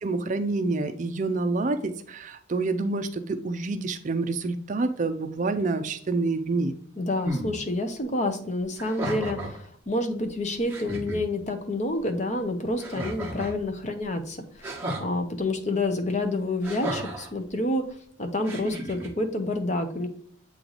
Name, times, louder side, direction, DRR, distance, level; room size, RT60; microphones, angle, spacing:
voice 1, 0.0-6.8, right 3 dB, 40° right, 9 dB, 0.4 m, -27 dB
voice 2, 7.0-14.7 15.0-17.8 18.2-20.1, left 2 dB, 35° left, 7 dB, 0.7 m, -28 dB
sound 1, 7.2-7.5 8.7-9.6 10.3-10.4 10.7-11.2 12.8-13.6 14.6-15.1 16.6-17.3 18.4-19.1, right 1 dB, 10° right, 1.3 m, -33 dB
7.6 x 3.1 x 4.0 m, 0.63 s
head